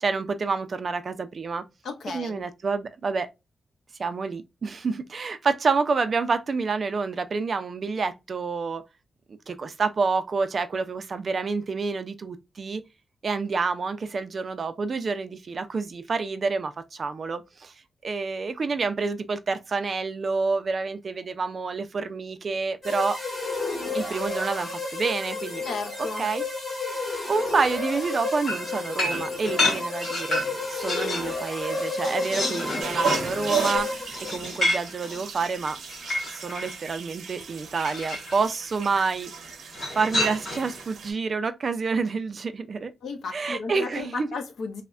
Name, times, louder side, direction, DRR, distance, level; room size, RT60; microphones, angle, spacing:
voice 1, 0.0-1.6 2.1-3.3 4.0-8.8 9.5-12.8 13.2-17.7 18.0-23.2 23.9-25.6 26.2-26.4 27.3-30.4 30.7-34.0 34.3-35.8 36.3-39.3 39.9-42.9 43.3-44.3, right 4 dB, 40° right, 0.3 m, -28 dB
voice 2, 1.8-2.4 25.6-26.3 43.0-44.8, left 4 dB, 70° left, 0.7 m, -34 dB
sound 1, 22.8-34.6, left 3 dB, 20° left, 1.4 m, -32 dB
sound 2, 28.5-31.4 31.7-36.8 37.8-38.4 39.7-40.8, left 1 dB, 45° left, 1.8 m, -29 dB
sound 3, 32.8-41.1, right 6 dB, 85° right, 0.6 m, -34 dB
3.2 x 2.0 x 2.3 m
wide cardioid pair, 165°, 0 cm